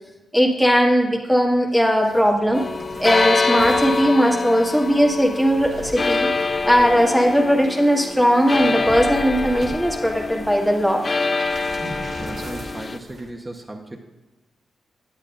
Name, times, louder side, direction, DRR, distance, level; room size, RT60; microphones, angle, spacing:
voice 1, 0.3-2.6 3.0-6.3 6.7-11.0, equal, ahead, -1 dB, 1.7 m, -18 dB
sound 1, 1.7-13.3, right 1 dB, 65° right, 1.2 m, -39 dB
sound 2, 2.5-13.0, left 3 dB, 40° left, 0.4 m, -25 dB
voice 2, 12.1-14.0, right 2 dB, 20° right, 1 dB, 1.0 m, -36 dB
9.9 x 8.2 x 2.6 m, 1.2 s
supercardioid pair, 50°, 0 cm